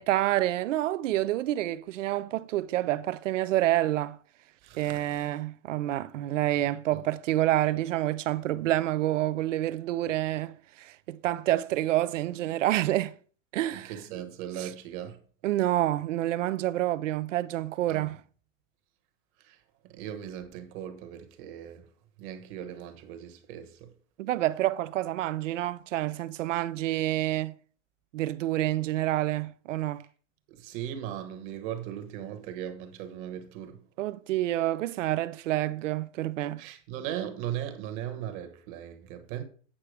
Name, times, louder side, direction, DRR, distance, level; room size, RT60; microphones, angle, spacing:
voice 1, 0.0-4.2 4.8-13.1 13.5-13.9 14.6-14.7 15.4-18.2 24.2-27.5 28.1-30.0 34.0-36.6, right 14 dB, 75° right, 0.7 m, -28 dB
voice 2, 4.6-5.3 6.9-7.0 13.7-15.2 17.9-18.1 19.4-19.6 19.8-21.9 22.2-23.9 30.5-33.8 36.6-39.4, right 10 dB, 35° right, 1.3 m, -38 dB
8.8 x 5.7 x 4.9 m
supercardioid pair, 155°, 38 cm